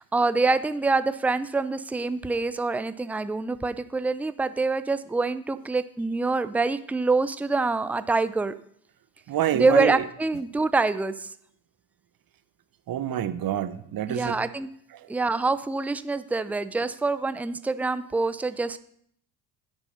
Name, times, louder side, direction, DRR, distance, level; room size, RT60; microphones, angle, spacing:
voice 1, 0.0-8.5 9.5-11.3 14.1-14.7 15.1-18.8, right 3 dB, 5° right, 13 dB, 0.5 m, -25 dB
voice 2, 9.3-10.0 12.9-14.4, right 11 dB, 45° right, 13 dB, 1.0 m, -27 dB
10.5 x 6.1 x 5.8 m, 0.67 s
hypercardioid pair, 55°, 50 cm